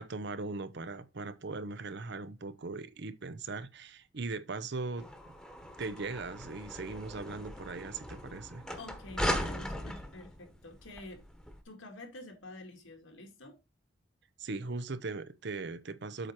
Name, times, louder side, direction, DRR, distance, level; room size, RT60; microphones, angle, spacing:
voice 1, 0.0-5.1 5.8-8.6 14.4-16.3, right 3 dB, 60° right, 0.8 m, -39 dB
sound 1, 5.0-11.6, equal, 5° left, 1.2 m, -39 dB
voice 2, 8.8-11.2 11.6-13.6, left 2 dB, 85° left, 2.3 m, -48 dB
7.9 x 4.5 x 4.4 m
head